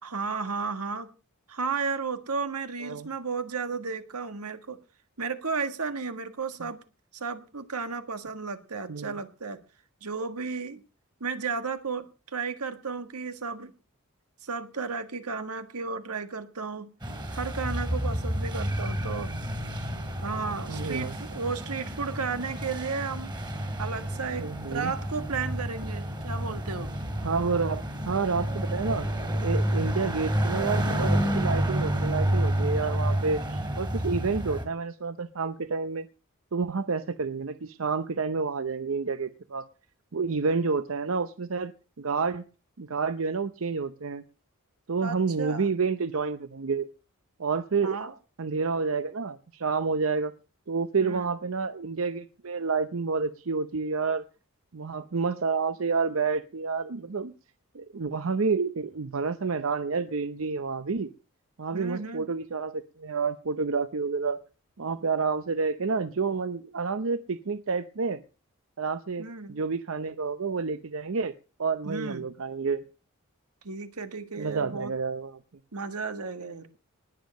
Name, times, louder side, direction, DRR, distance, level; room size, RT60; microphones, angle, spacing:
voice 1, 0.0-1.1 1.5-4.8 5.2-6.8 7.1-9.6 10.0-10.8 11.2-13.7 14.4-16.9 17.3-19.3 20.2-23.3 23.8-26.9 45.0-45.7 47.8-48.1 51.0-51.3 61.7-62.3 69.2-69.6 71.8-72.2 73.6-74.9 75.7-76.8, right 4 dB, 85° right, 9 dB, 1.7 m, -33 dB
voice 2, 8.9-9.2 19.3-19.4 20.0-20.1 20.7-21.2 24.4-24.9 27.2-29.1 29.4-36.1 36.5-39.7 40.1-41.7 42.0-42.4 42.8-44.2 44.9-46.9 47.4-48.0 48.4-50.3 50.7-54.2 54.7-57.3 57.7-61.1 61.6-64.4 64.8-68.2 68.8-71.3 71.6-72.8 74.4-75.4, right 4 dB, 60° right, 12 dB, 0.7 m, -29 dB
sound 1, 17.0-34.6, right 1 dB, 20° right, 2.5 m, -30 dB
19.5 x 7.2 x 6.5 m, 0.36 s
head